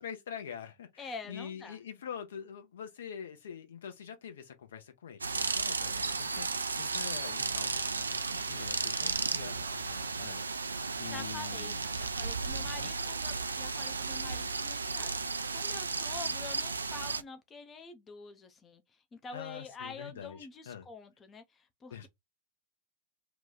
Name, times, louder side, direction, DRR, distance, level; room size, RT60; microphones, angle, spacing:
voice 1, 0.0-11.8 12.5-12.9 16.3-16.4 19.3-20.9 21.9-22.1, left 8 dB, 65° left, 0.7 m, -45 dB
voice 2, 1.0-1.8 8.5-8.8 9.0-9.1 11.0-22.1, left 4 dB, 20° left, 0.5 m, -47 dB
sound 1, 5.2-17.2, right 4 dB, 75° right, 0.3 m, -34 dB
2.9 x 2.3 x 3.7 m
figure-of-eight pair, 90°, 0 cm